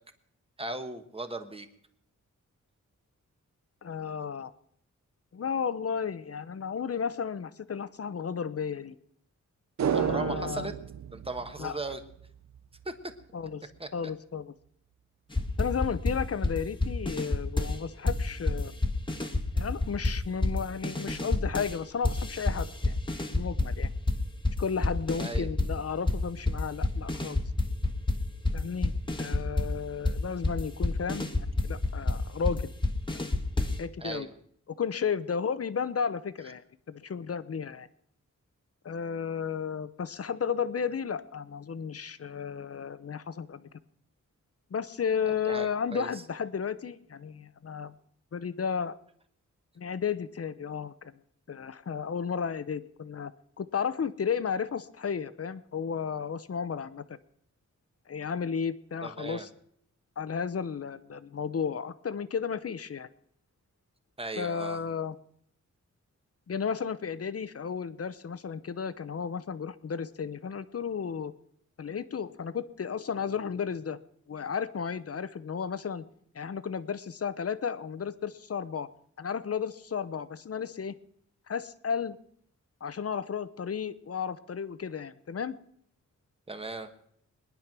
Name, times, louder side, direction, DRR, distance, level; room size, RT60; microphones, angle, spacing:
voice 1, 0.6-1.7 9.9-10.7 11.1-12.0 12.8-12.9 13.8-13.9 25.2-25.5 34.0-34.3 45.4-46.2 59.0-59.5 64.2-64.8 86.5-86.9, right 2 dB, 20° right, 8 dB, 1.3 m, -37 dB
voice 2, 3.8-4.5 5.3-9.0 9.9-10.7 11.6-11.8 13.3-13.6 13.9-14.5 15.6-18.7 19.5-23.0 23.3-23.9 24.6-27.4 28.5-28.9 29.2-32.7 33.8-34.3 34.8-37.9 38.8-43.7 44.7-47.9 48.3-49.0 49.8-51.1 51.5-53.3 53.6-57.2 58.1-59.5 60.2-63.1 64.4-65.1 66.5-71.3 71.8-74.0 74.3-76.0 76.3-78.9 79.2-80.9 81.5-82.2 82.8-85.6, left 6 dB, 50° left, 14 dB, 0.8 m, -33 dB
sound 1, 9.8-12.3 12.6-12.7, right 9 dB, 65° right, 0.6 m, -31 dB
sound 2, 15.3-17.8 18.1-21.8 22.0-25.8 26.1-33.9, left 2 dB, 15° left, 1.4 m, -29 dB
22.0 x 10.5 x 6.0 m, 0.69 s
wide cardioid pair, 130°, 31 cm